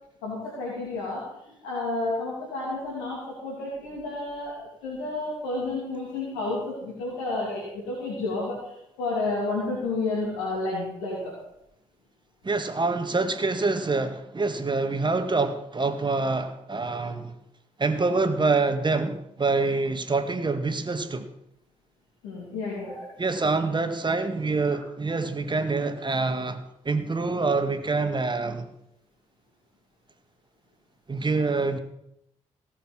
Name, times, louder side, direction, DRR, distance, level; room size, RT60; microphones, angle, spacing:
voice 1, 0.2-1.2 1.6-8.7 9.0-11.3 22.2-23.0, left 2 dB, 80° left, 2.9 m, -31 dB
voice 2, 12.4-17.4 17.8-21.3 23.2-28.7 31.1-31.8, right 3 dB, 30° right, 1.8 m, -26 dB
17.0 x 6.8 x 6.2 m
hypercardioid pair, 45°, 16 cm